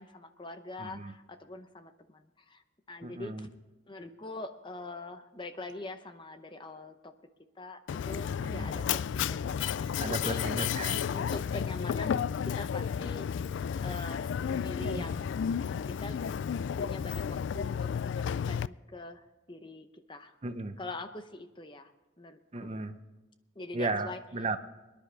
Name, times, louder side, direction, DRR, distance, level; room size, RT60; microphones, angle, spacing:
voice 1, 0.0-2.6 2.9-3.5 3.9-7.1 7.6-10.0 10.2-10.7 11.1-13.2 13.8-15.7 16.0-16.2 16.8-20.4 20.8-21.9 22.2-22.7 23.6-24.2, left 2 dB, 25° left, 9 dB, 0.7 m, -44 dB
voice 2, 0.8-1.1 3.0-3.5 8.4-8.7 10.0-11.1 14.8-15.0 20.4-20.7 22.5-23.0 23.7-24.6, right 3 dB, 35° right, 9 dB, 0.7 m, -35 dB
Mechanisms, 7.9-18.7, left 7 dB, 70° left, 0.3 m, -32 dB
24.0 x 10.5 x 3.3 m, 1.1 s
head